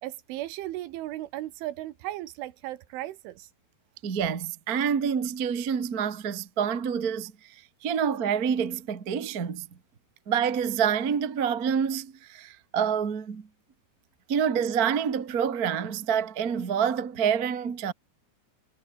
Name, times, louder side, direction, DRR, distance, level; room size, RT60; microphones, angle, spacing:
voice 1, 0.0-3.5, right 15 dB, 90° right, 3.8 m, -36 dB
voice 2, 4.0-9.7 10.3-13.5 14.3-17.9, right 7 dB, 55° right, 1.0 m, -27 dB
omnidirectional pair, 5.4 m